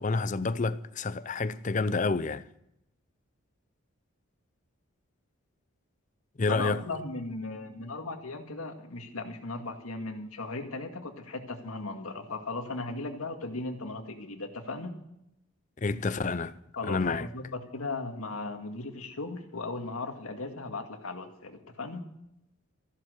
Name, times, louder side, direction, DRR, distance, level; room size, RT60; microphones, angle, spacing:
voice 1, 0.0-2.4 6.4-6.8 15.8-16.5 16.9-17.3, left 3 dB, 35° left, 0.5 m, -29 dB
voice 2, 6.5-14.9 16.8-22.0, left 3 dB, 85° left, 2.0 m, -37 dB
14.0 x 12.0 x 6.4 m
head